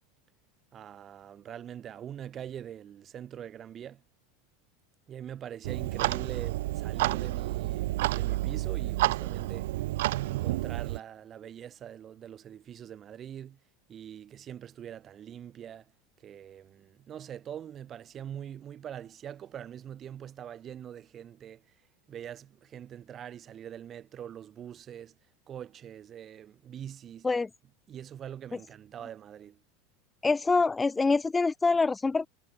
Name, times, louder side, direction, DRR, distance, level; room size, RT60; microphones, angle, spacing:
voice 1, 0.7-4.0 5.1-9.7 10.2-13.6 13.9-15.9 16.2-21.7 22.1-25.1 25.5-27.3 27.9-29.6, right 9 dB, 25° right, 5.8 m, -43 dB
Clock, 5.6-11.0, right 17 dB, 75° right, 1.7 m, -30 dB
voice 2, 30.2-32.3, left 4 dB, 10° left, 1.9 m, -25 dB
supercardioid pair, 155°, 0 cm